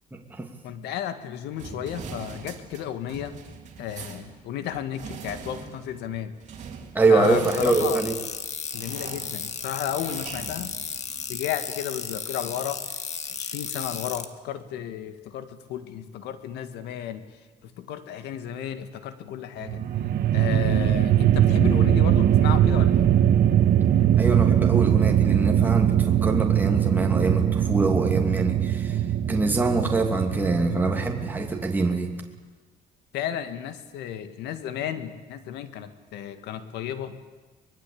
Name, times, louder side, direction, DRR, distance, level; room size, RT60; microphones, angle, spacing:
voice 1, 0.1-0.5 6.9-8.2 24.2-29.0 29.3-32.2, right 3 dB, 10° right, 1 dB, 2.7 m, -24 dB
voice 2, 0.6-3.4 3.8-6.3 7.1-8.0 8.7-10.7 11.3-17.2 17.6-19.8 20.3-23.1 33.1-37.2, left 10 dB, 85° left, 10 dB, 2.0 m, -33 dB
sound 1, 1.6-11.4, right 5 dB, 45° right, 3.5 m, -42 dB
sound 2, 7.4-14.3, left 6 dB, 40° left, 1.9 m, -34 dB
sound 3, 19.6-31.9, right 10 dB, 60° right, 1.7 m, -21 dB
24.0 x 21.0 x 8.7 m, 1.3 s
cardioid pair, 110°, 17 cm